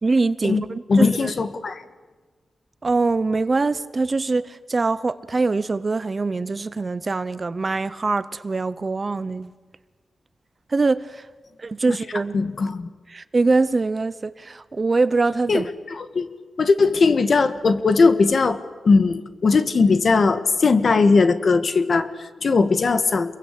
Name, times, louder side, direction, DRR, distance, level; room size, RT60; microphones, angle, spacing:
voice 1, 0.0-1.3 2.8-9.5 10.7-11.3 11.6-12.4 13.1-15.7, right 3 dB, 30° right, 0.8 m, -23 dB
voice 2, 0.9-1.8 11.9-12.0 12.3-12.9 15.5-16.3 16.6-18.6 18.8-23.3, left 4 dB, 50° left, 1.7 m, -19 dB
28.5 x 22.5 x 8.4 m
wide cardioid pair, 135°, 0 cm